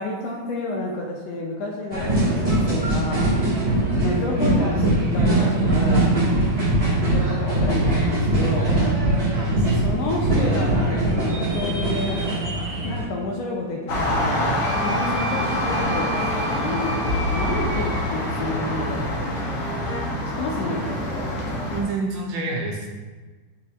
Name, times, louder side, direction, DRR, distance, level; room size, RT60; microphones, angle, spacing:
voice 1, 0.0-3.3 3.9-6.1 7.0-8.7 9.5-17.0 17.3-19.7 20.4-21.2, left 2 dB, 75° left, -1 dB, 1.6 m, -30 dB
sound 1, 1.9-13.0, right 1 dB, 15° right, 1.3 m, -21 dB
voice 2, 8.9-9.7 21.7-22.9, right 2 dB, 75° right, -1 dB, 2.3 m, -29 dB
sound 2, 13.9-21.8, left 1 dB, 60° left, 1.8 m, -25 dB
Wind instrument woodwind instrument, 14.6-18.0, right 2 dB, 50° right, 2.3 m, -33 dB
9.0 x 4.3 x 2.4 m, 1.3 s
omnidirectional pair, 3.3 m